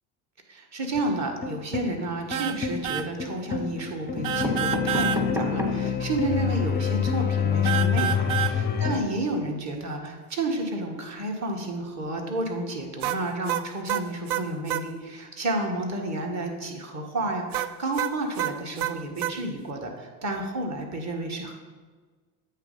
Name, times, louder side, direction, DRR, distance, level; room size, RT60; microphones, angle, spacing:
voice 1, 0.5-21.5, right 2 dB, 35° right, 2 dB, 1.5 m, -31 dB
sound 1, 0.9-9.0, left 7 dB, 20° left, 0.5 m, -27 dB
sound 2, 2.3-2.6 2.8-3.1 4.2-5.2 7.7-8.6 13.0-14.9 17.5-19.4, right 11 dB, 70° right, 0.5 m, -28 dB
sound 3, 2.4-3.1 3.8-3.9 4.2-6.0 6.5-6.6 6.8-6.9 7.1-7.3, equal, 5° right, 0.9 m, -31 dB
8.1 x 3.4 x 5.4 m, 1.4 s
hypercardioid pair, 75°, 47 cm